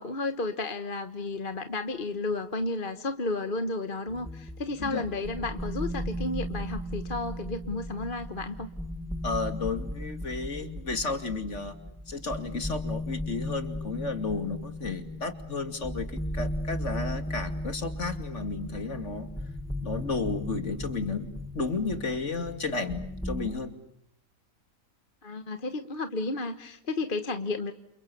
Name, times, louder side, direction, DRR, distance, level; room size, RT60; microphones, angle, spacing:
voice 1, 0.0-8.7 25.2-27.7, left 2 dB, 40° left, 9 dB, 1.4 m, -32 dB
sound 1, 4.1-23.5, left 1 dB, ahead, 1.1 m, -36 dB
voice 2, 9.2-11.8 12.1-19.3 19.8-23.7, left 3 dB, 55° left, 9 dB, 2.9 m, -33 dB
29.0 x 29.0 x 7.0 m, 0.71 s
omnidirectional pair, 1.5 m